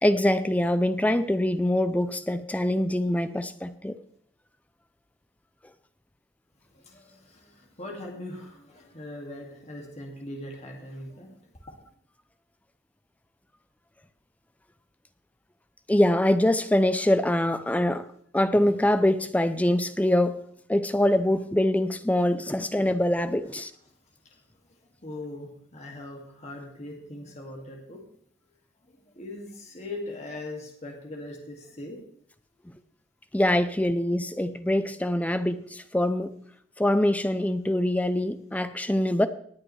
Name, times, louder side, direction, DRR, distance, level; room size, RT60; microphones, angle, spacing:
voice 1, 0.0-4.0 15.9-18.1 18.3-20.4 20.7-23.7 33.3-36.3 36.8-39.3, left 1 dB, 5° left, 11 dB, 0.5 m, -24 dB
voice 2, 6.7-11.5 24.7-28.0 28.9-32.0, left 1 dB, 35° left, 0 dB, 2.2 m, -40 dB
19.0 x 8.7 x 3.2 m, 0.63 s
head